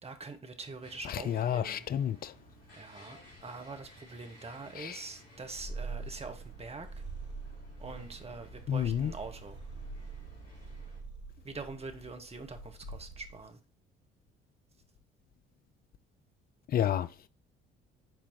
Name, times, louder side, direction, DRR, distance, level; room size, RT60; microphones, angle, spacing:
voice 1, 0.0-1.9 2.8-6.9 7.8-9.6 11.4-13.6, right 3 dB, 20° right, 0.9 m, -44 dB
sound 1, 0.8-11.0, left 1 dB, 70° left, 3.2 m, -57 dB
voice 2, 1.1-2.3 4.8-5.0 8.7-9.1 16.7-17.1, left 9 dB, 30° left, 0.4 m, -30 dB
Purr, 5.5-13.5, right 3 dB, 85° right, 1.0 m, -44 dB
7.7 x 4.3 x 3.1 m
figure-of-eight pair, 50°, 31 cm